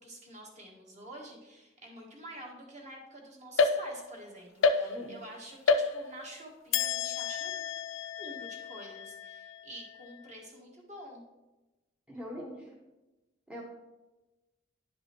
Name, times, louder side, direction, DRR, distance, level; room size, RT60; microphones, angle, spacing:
voice 1, 0.0-7.6 8.2-11.2, right 1 dB, 40° right, -1 dB, 1.5 m, -48 dB
sound 1, 3.6-4.2 4.6-5.3 5.7-6.3 6.7-10.2, left 4 dB, 90° left, 0.5 m, -30 dB
voice 2, 4.8-5.2 12.1-12.7 13.5-13.6, equal, 5° right, -3 dB, 0.8 m, -42 dB
10.5 x 5.3 x 3.0 m, 1.1 s
head